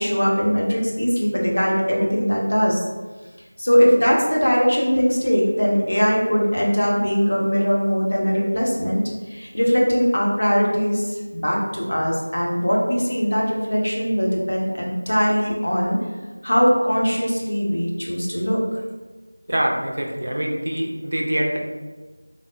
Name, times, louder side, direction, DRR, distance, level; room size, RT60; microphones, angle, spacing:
voice 1, 0.0-2.8 3.6-9.0 9.3-16.0 16.4-18.8, equal, 65° left, -3 dB, 0.8 m, -20 dB
voice 2, 19.5-21.6, right 1 dB, 55° right, 1 dB, 0.4 m, -24 dB
3.5 x 2.0 x 2.3 m, 1.3 s
figure-of-eight pair, 175°, 0 cm